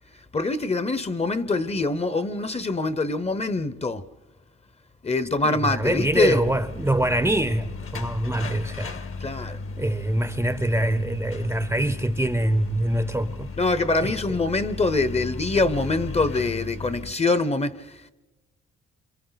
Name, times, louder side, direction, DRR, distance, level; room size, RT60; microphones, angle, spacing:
voice 1, 0.3-4.0 5.0-6.4 9.2-9.6 13.5-18.1, left 3 dB, 20° left, 0.8 m, -24 dB
voice 2, 5.4-9.0 9.8-13.5 14.0-14.1, right 1 dB, 10° right, 0.7 m, -24 dB
sound 1, 5.7-17.1, left 3 dB, 45° left, 1.2 m, -35 dB
27.5 x 26.5 x 4.0 m
cardioid pair, 90°, 30 cm